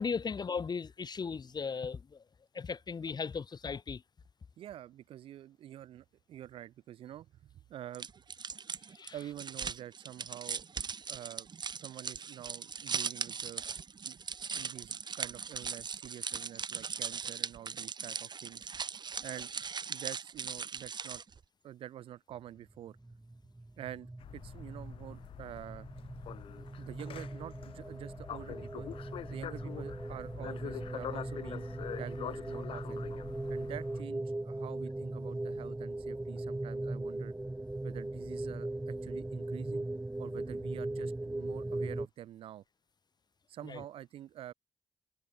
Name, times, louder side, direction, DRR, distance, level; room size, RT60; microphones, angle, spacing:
voice 1, 0.0-2.0 2.5-4.0 9.0-9.1 43.7-43.8, left 5 dB, 50° left, 1.4 m, -36 dB
voice 2, 4.6-8.1 9.1-10.6 11.1-11.5 11.7-13.6 14.1-14.2 14.5-18.7 19.2-19.5 19.9-21.2 21.6-23.0 23.8-24.1 24.3-25.9 26.8-28.9 29.3-31.6 31.9-33.0 33.5-37.3 37.8-39.9 40.2-42.6 43.5-44.5, right 12 dB, 80° right, 4.3 m, -47 dB
sound 1, 7.9-21.4, right 6 dB, 50° right, 1.5 m, -39 dB
sound 2, 22.7-42.1, right 2 dB, 15° right, 1.0 m, -39 dB
sound 3, 24.2-34.0, left 10 dB, 75° left, 4.9 m, -45 dB
hypercardioid pair, 40°, 9 cm